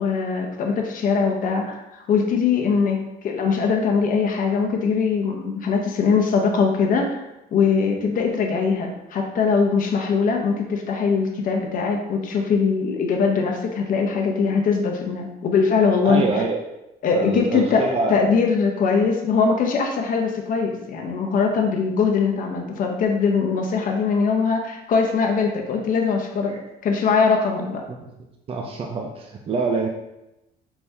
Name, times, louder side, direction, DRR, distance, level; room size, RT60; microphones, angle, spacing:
voice 1, 0.0-3.0 3.2-7.2 7.5-16.3 17.0-26.6 26.8-27.8, left 5 dB, 55° left, 2 dB, 0.8 m, -21 dB
voice 2, 16.0-16.6 17.1-18.2 26.5-26.6 27.9-28.1 28.5-29.9, right 3 dB, 35° right, 1 dB, 0.5 m, -25 dB
4.6 x 3.5 x 2.7 m, 0.91 s
cardioid pair, 110°, 17 cm